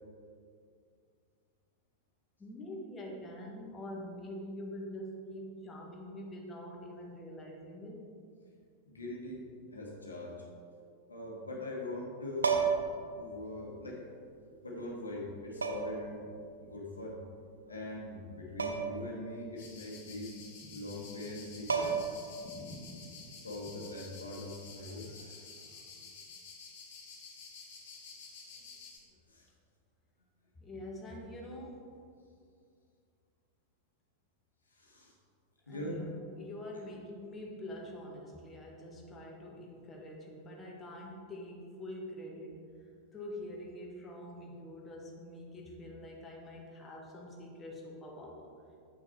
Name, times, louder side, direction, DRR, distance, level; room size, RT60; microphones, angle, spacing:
voice 1, 2.4-8.1 30.5-32.1 35.7-42.6 43.1-48.5, left 1 dB, 20° left, -2 dB, 1.5 m, -45 dB
voice 2, 8.9-9.4 9.7-10.5 11.1-12.9 13.2-14.1 14.6-16.3 16.6-17.2 17.7-20.4 20.7-21.9 23.4-26.1 27.8-28.3 29.3-29.5 34.7-35.1 35.7-36.0, left 1 dB, 80° left, -2 dB, 1.4 m, -42 dB
sound 1, 12.4-13.0 14.3-14.4 15.6-16.1 18.6-19.0 19.3-19.4 21.3-21.4 21.7-22.3 24.2-24.5, right 5 dB, 75° right, 0.7 m, -31 dB
sound 2, 19.6-29.0, left 3 dB, 55° left, 1.9 m, -50 dB
7.9 x 6.1 x 4.5 m, 2.3 s
figure-of-eight pair, 90°, 0 cm